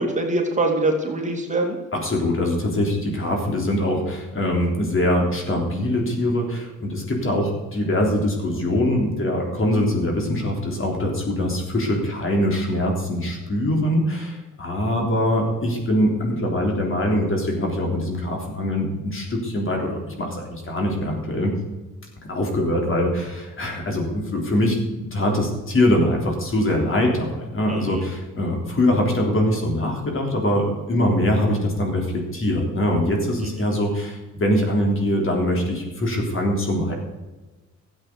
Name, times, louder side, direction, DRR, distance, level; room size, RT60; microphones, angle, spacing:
voice 1, 0.0-1.8 27.7-28.0 33.4-33.5, right 2 dB, 25° right, 1 dB, 2.6 m, -23 dB
voice 2, 1.9-21.5 22.2-36.9, left 1 dB, 45° left, 1 dB, 3.6 m, -23 dB
13.0 x 8.2 x 6.8 m, 1.2 s
cardioid pair, 90°, 30 cm